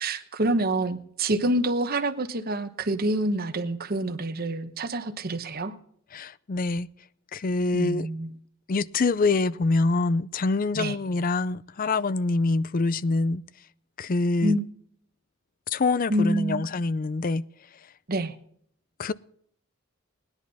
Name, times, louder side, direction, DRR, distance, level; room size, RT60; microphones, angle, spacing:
voice 1, 0.0-5.8 7.7-8.3 10.7-11.0 14.4-14.6 16.1-16.7 18.1-18.3, right 1 dB, 45° right, 1.1 m, -27 dB
voice 2, 6.1-6.9 7.3-8.1 8.7-13.4 14.0-14.6 15.7-17.4 19.0-19.1, left 3 dB, 45° left, 0.5 m, -25 dB
19.0 x 10.5 x 4.1 m
head